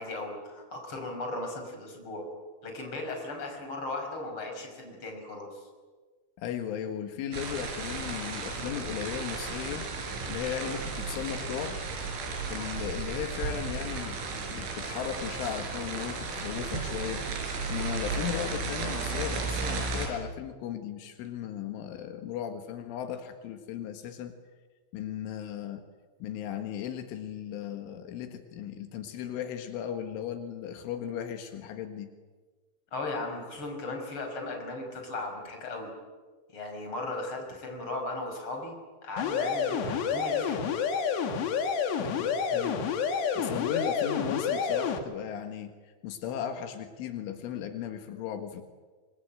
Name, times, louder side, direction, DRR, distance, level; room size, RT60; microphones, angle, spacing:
voice 1, 0.0-2.3 2.6-5.6 32.9-35.9 36.5-40.7, left 2 dB, 25° left, 3 dB, 6.2 m, -37 dB
voice 2, 6.4-9.9 10.3-11.8 12.5-17.2 17.7-24.4 24.9-25.9 26.2-32.1 41.9-42.9 43.1-48.6, left 9 dB, 85° left, 7 dB, 4.2 m, -36 dB
sound 1, 7.3-20.1, right 4 dB, 80° right, 7.0 m, -34 dB
sound 2, 39.2-45.0, left 6 dB, 65° left, 4.0 m, -29 dB
26.0 x 24.5 x 9.1 m, 1.4 s
omnidirectional pair, 5.4 m